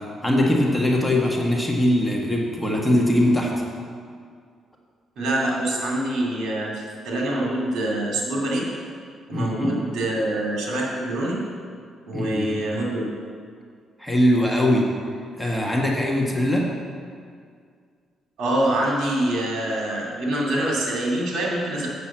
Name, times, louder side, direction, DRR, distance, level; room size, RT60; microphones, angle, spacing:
voice 1, 0.2-3.5 9.3-9.8 12.1-12.5 14.0-14.9 15.4-16.7, left 1 dB, 10° left, -2 dB, 1.5 m, -21 dB
voice 2, 5.2-8.7 9.3-11.4 12.1-13.1 18.4-21.9, right 1 dB, 70° right, -3 dB, 2.8 m, -25 dB
7.6 x 6.1 x 7.4 m, 2.1 s
cardioid pair, 90°, 0 cm